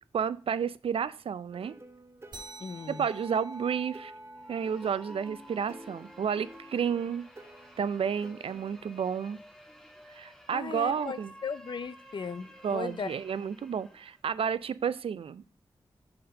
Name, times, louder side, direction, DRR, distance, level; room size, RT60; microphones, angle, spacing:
voice 1, 0.1-1.7 2.9-4.1 4.5-7.2 7.8-9.4 10.1-11.3 12.6-15.4, right 7 dB, 80° right, 0.4 m, -31 dB
sound 1, 1.5-8.8, right 1 dB, 25° right, 0.8 m, -51 dB
sound 2, 2.3-7.2, right 1 dB, 50° right, 2.6 m, -48 dB
voice 2, 2.6-3.0 10.5-13.2, left 5 dB, 55° left, 0.5 m, -37 dB
sound 3, 4.3-14.2, equal, 5° left, 1.7 m, -53 dB
6.5 x 4.2 x 6.4 m
wide cardioid pair, 105°, 9 cm